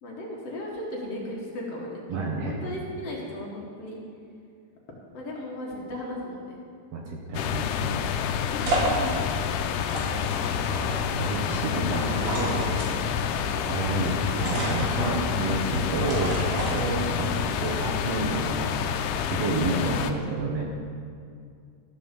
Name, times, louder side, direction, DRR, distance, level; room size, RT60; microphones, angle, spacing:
voice 1, 0.0-2.0 2.3-4.0 5.1-6.6 8.5-9.2 11.5-13.4 19.5-20.0, left 1 dB, 55° left, -3 dB, 2.5 m, -36 dB
voice 2, 2.1-2.6 6.9-8.1 10.0-10.4 11.2-12.1 13.7-16.4 16.7-18.7 19.3-20.7, right 3 dB, 65° right, -1 dB, 1.8 m, -30 dB
sound 1, 7.3-20.1, left 8 dB, 85° left, 2.1 m, -28 dB
sound 2, 7.9-17.4, right 2 dB, 80° right, 3.3 m, -32 dB
13.5 x 5.2 x 6.9 m, 2.3 s
omnidirectional pair, 3.5 m